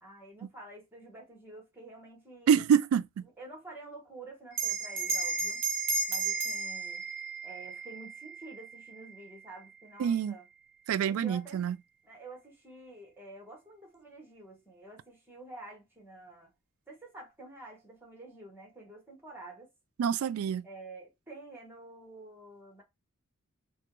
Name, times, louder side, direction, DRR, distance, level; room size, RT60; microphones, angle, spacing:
voice 1, 0.0-2.6 3.2-5.6 6.1-7.1 7.4-10.5 11.1-11.6 12.0-16.5 16.9-19.7 20.6-22.8, right 2 dB, 10° right, 1.3 m, -49 dB
voice 2, 2.5-3.2 10.0-10.3 10.9-11.8 20.0-20.7, right 8 dB, 90° right, 0.3 m, -26 dB
Bell, 4.5-9.4, right 4 dB, 50° right, 0.9 m, -34 dB
3.3 x 2.3 x 2.9 m
head